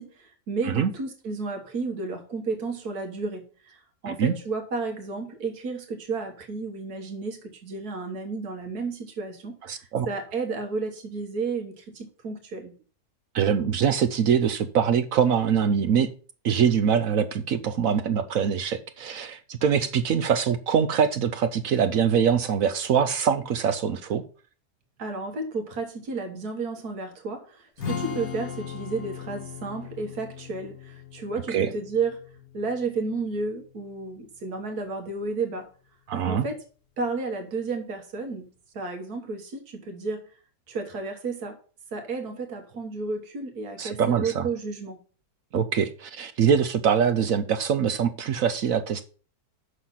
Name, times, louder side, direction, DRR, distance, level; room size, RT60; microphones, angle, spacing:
voice 1, 0.0-12.7 25.0-32.2 32.5-35.7 36.3-36.6 37.0-40.3 40.7-41.6 41.9-45.0, right 4 dB, 90° right, 1.9 m, -32 dB
voice 2, 9.7-10.1 13.3-16.1 16.4-24.2 31.5-31.7 36.1-36.4 43.8-44.5 45.5-49.0, right 7 dB, 70° right, 1.1 m, -23 dB
Strum, 27.8-34.0, left 7 dB, 70° left, 2.2 m, -38 dB
8.1 x 6.6 x 5.6 m
omnidirectional pair, 1.6 m